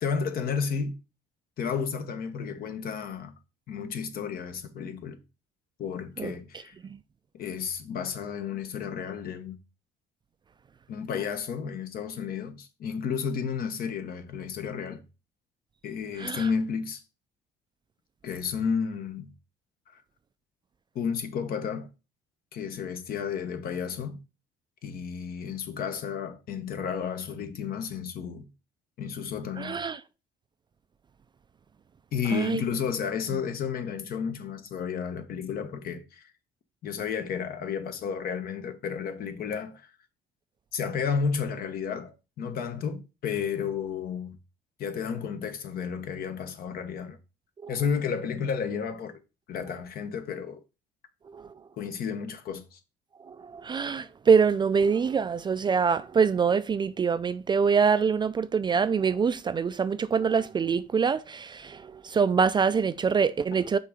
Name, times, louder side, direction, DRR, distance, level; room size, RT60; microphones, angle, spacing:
voice 1, 0.0-1.0 1.6-3.4 3.7-5.2 5.8-6.7 7.3-9.6 10.9-15.0 15.8-17.0 18.2-19.3 20.9-21.9 22.5-24.2 24.8-28.5 29.0-29.8 32.1-36.3 36.8-39.9 40.7-44.4 44.8-47.2 47.7-49.1 49.5-50.6 51.8-52.8, left 6 dB, 60° left, 1.0 m, -32 dB
voice 2, 29.6-30.0 32.3-32.6 47.6-47.7 51.3-51.5 53.3-63.8, right 6 dB, 25° right, 0.3 m, -25 dB
5.6 x 3.8 x 4.8 m
cardioid pair, 110°, 17 cm